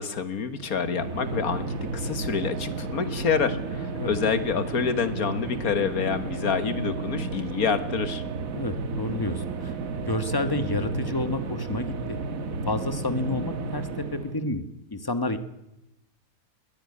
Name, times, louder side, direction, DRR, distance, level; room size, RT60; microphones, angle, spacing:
voice 1, 0.0-8.2, left 6 dB, 90° left, 11 dB, 1.9 m, -27 dB
sound 1, 0.6-14.5, right 4 dB, 75° right, 1.7 m, -32 dB
voice 2, 8.5-9.7 10.1-12.2 12.6-15.4, left 2 dB, 15° left, 10 dB, 1.3 m, -30 dB
21.0 x 15.0 x 9.8 m, 0.90 s
omnidirectional pair, 1.5 m